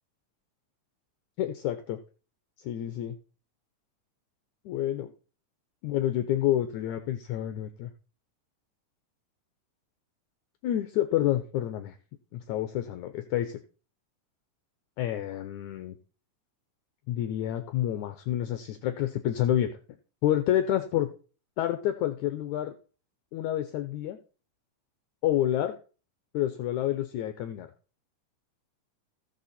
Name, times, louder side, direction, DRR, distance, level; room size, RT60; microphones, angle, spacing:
voice 1, 1.4-2.0 2.6-3.2 4.7-5.1 5.8-7.9 10.6-12.0 12.3-13.6 15.0-16.0 17.1-19.7 20.2-21.1 21.6-22.7 23.3-24.2 25.2-25.8 26.3-27.7, left 12 dB, 75° left, 8 dB, 2.0 m, -28 dB
16.0 x 6.5 x 4.2 m, 0.37 s
omnidirectional pair, 3.8 m